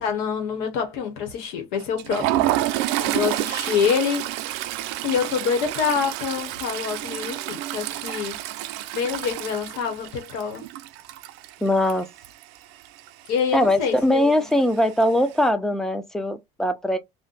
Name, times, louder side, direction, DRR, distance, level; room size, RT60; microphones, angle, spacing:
voice 1, 0.0-4.3 5.0-8.4 8.9-10.6 13.3-14.3, left 6 dB, 85° left, 1.0 m, -26 dB
Toilet flush, 1.8-12.6 12.9-13.1 13.4-13.6 14.5-15.0, right 14 dB, 80° right, 0.4 m, -29 dB
voice 2, 11.6-12.1 13.5-17.0, left 1 dB, 5° left, 0.4 m, -21 dB
2.6 x 2.1 x 3.8 m
cardioid pair, 145°, 17 cm